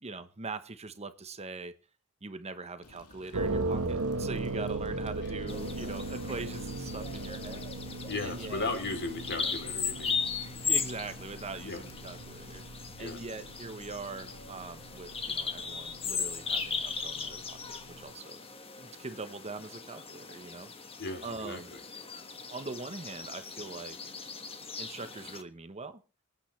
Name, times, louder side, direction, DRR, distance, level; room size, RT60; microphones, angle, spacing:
voice 1, 0.0-1.8 2.2-7.7 8.2-8.7 10.6-18.4 18.8-20.7 21.2-21.7 22.5-24.0 24.8-26.0, right 3 dB, 30° right, 1.0 m, -42 dB
sound 1, 2.8-12.7, left 2 dB, 85° left, 2.0 m, -55 dB
sound 2, 3.3-18.1, right 2 dB, 85° right, 1.3 m, -38 dB
Bird vocalization bird call bird song, 5.5-25.4, left 5 dB, 25° left, 1.6 m, -38 dB
voice 2, 8.1-10.2 11.6-11.8 13.0-13.2 21.0-21.8, left 3 dB, 50° left, 3.3 m, -36 dB
26.5 x 9.0 x 3.2 m
head